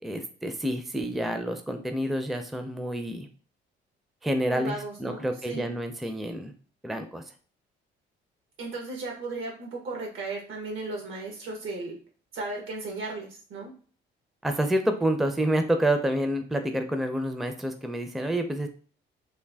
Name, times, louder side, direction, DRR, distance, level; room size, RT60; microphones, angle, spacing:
voice 1, 0.0-3.3 4.2-6.5 6.8-7.2 14.4-18.7, right 1 dB, ahead, 7 dB, 0.4 m, -28 dB
voice 2, 4.5-5.7 8.6-11.9 12.3-13.7, right 3 dB, 80° right, 1 dB, 1.2 m, -35 dB
3.3 x 2.2 x 3.3 m, 0.41 s
cardioid pair, 90°, 20 cm